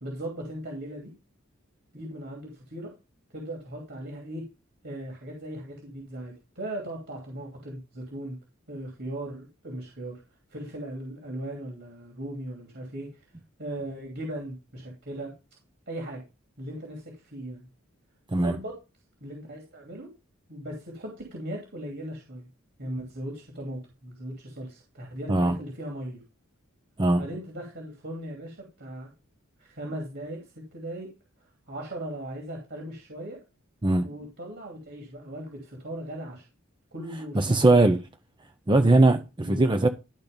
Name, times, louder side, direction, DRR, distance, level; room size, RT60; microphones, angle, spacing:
voice 1, 0.0-1.1 1.9-2.9 3.3-4.4 4.8-8.4 8.7-10.2 10.5-13.2 13.6-15.3 15.9-16.2 16.6-17.7 18.3-18.7 19.2-20.1 20.5-22.5 22.8-26.2 27.2-29.1 29.6-31.1 31.7-33.4 34.0-36.5 36.9-37.8 39.4-39.7, right 1 dB, 55° right, 2.8 m, -38 dB
voice 2, 37.3-38.0 38.7-39.9, right 2 dB, 25° right, 0.7 m, -20 dB
12.0 x 4.5 x 5.2 m
head